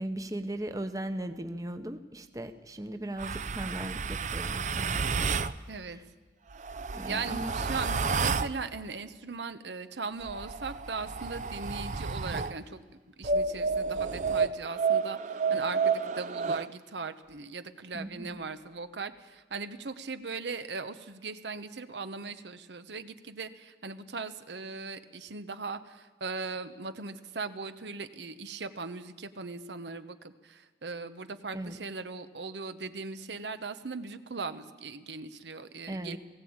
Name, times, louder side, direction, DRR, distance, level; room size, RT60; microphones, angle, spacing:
voice 1, 0.0-5.1 5.8-6.0 6.9-7.6 17.9-18.4 31.5-31.8 35.9-36.2, right 1 dB, 20° right, 8 dB, 0.9 m, -38 dB
sound 1, 3.2-5.5 6.5-8.6 10.2-12.6 13.2-16.7, right 5 dB, 45° right, 0.5 m, -30 dB
voice 2, 5.7-6.0 7.1-12.8 13.2-15.2 15.5-36.2, right 4 dB, 85° right, 10 dB, 1.0 m, -39 dB
19.0 x 16.0 x 8.8 m, 1.4 s
head